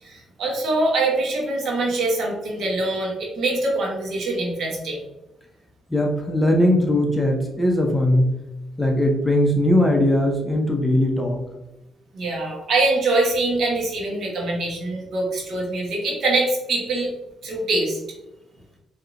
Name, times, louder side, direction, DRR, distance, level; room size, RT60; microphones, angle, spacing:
voice 1, 0.0-5.0 12.1-17.1 17.4-18.0, right 2 dB, 65° right, -2 dB, 1.1 m, -24 dB
voice 2, 5.9-8.4 8.8-11.5, left 1 dB, 15° left, 1 dB, 0.7 m, -19 dB
4.6 x 2.8 x 2.5 m, 0.94 s
cardioid pair, 90°, 0 cm